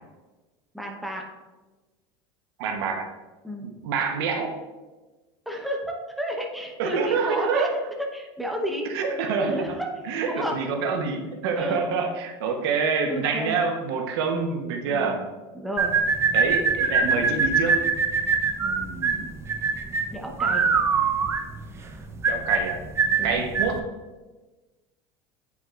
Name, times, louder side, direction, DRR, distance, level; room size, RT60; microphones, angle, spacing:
voice 1, 0.7-1.2 3.4-3.7 5.5-7.7 8.0-8.9 9.4-9.9 10.2-10.6 11.5-11.8 13.1-13.6 14.8-15.2 15.5-15.9 18.6-19.3 20.1-20.7 23.2-23.4, equal, ahead, 0 dB, 0.9 m, -32 dB
voice 2, 2.6-3.1 3.6-4.6 6.8-7.7 8.9-9.6 10.1-15.2 16.3-17.8 22.3-22.8 23.2-23.9, right 5 dB, 80° right, 4 dB, 1.0 m, -26 dB
sound 1, 15.8-23.8, right 5 dB, 20° right, 0.6 m, -23 dB
9.3 x 5.9 x 2.5 m, 1.2 s
supercardioid pair, 135°, 13 cm